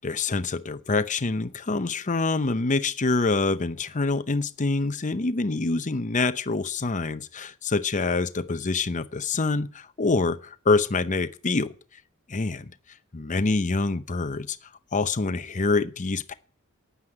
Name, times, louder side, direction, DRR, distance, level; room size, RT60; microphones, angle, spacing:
voice 1, 0.0-11.7 12.3-12.7 13.1-14.6 14.9-16.3, left 3 dB, 35° left, 0.7 m, -26 dB
9.7 x 9.5 x 8.7 m
head